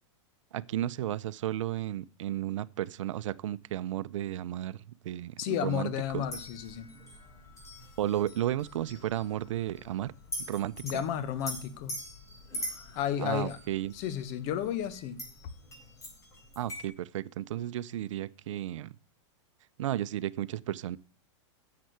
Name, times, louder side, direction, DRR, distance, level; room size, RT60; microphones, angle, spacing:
voice 1, 0.5-6.2 8.0-10.1 10.5-11.0 13.2-13.9 16.6-18.9 19.8-21.0, right 12 dB, 75° right, 0.6 m, -33 dB
voice 2, 5.4-6.9 10.8-12.0 12.9-13.6 13.9-15.2, left 10 dB, 45° left, 1.4 m, -32 dB
sound 1, 6.0-16.9, equal, 20° left, 4.0 m, -44 dB
10.0 x 7.6 x 8.0 m
hypercardioid pair, 130°, 16 cm